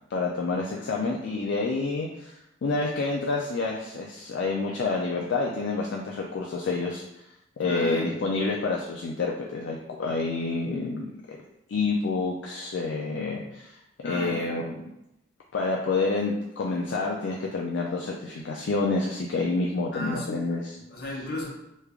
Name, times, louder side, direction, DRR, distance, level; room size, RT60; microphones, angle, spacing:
voice 1, 0.1-2.3 2.6-7.0 7.6-11.4 11.7-13.7 14.0-14.9 15.5-20.7, left 3 dB, 70° left, -2 dB, 0.4 m, -28 dB
voice 2, 7.6-8.1 14.0-14.6 19.9-20.6 20.9-21.5, left 2 dB, 50° left, -3 dB, 0.9 m, -35 dB
3.1 x 2.4 x 3.4 m, 0.87 s
head